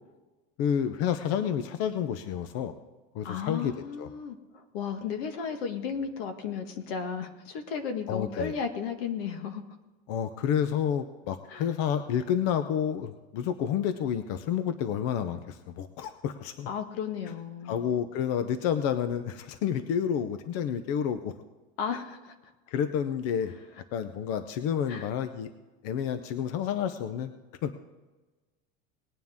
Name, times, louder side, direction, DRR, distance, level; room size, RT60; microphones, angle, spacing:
voice 1, 0.6-2.7 3.1-3.7 4.0-4.1 8.1-8.5 10.1-16.7 17.6-21.3 22.7-23.5 23.9-25.5 25.8-27.3 27.6-27.7, left 8 dB, 50° left, 10 dB, 0.7 m, -29 dB
voice 2, 3.2-9.6 11.5-11.7 16.7-17.8 21.8-22.3 24.9-25.1, left 6 dB, 85° left, 6 dB, 1.7 m, -34 dB
19.5 x 9.4 x 3.6 m, 1.2 s
cardioid pair, 165°, 29 cm